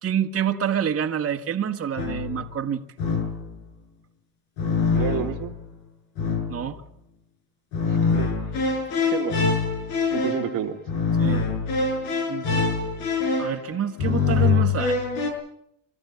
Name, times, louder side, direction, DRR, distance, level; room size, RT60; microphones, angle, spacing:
voice 1, 0.0-2.8 6.5-6.8 11.2-11.4 12.3-12.6 13.4-15.0, right 8 dB, 40° right, 3 dB, 1.7 m, -27 dB
sound 1, 2.0-2.5 3.0-3.5 4.6-5.6 6.2-6.7 7.7-15.3, left 5 dB, 90° left, 5.9 m, -24 dB
voice 2, 5.0-5.5 7.9-8.3 9.0-9.6 10.1-10.8, right 10 dB, 65° right, 5 dB, 2.0 m, -30 dB
24.0 x 13.5 x 9.8 m, 0.77 s
cardioid pair, 95°, 35 cm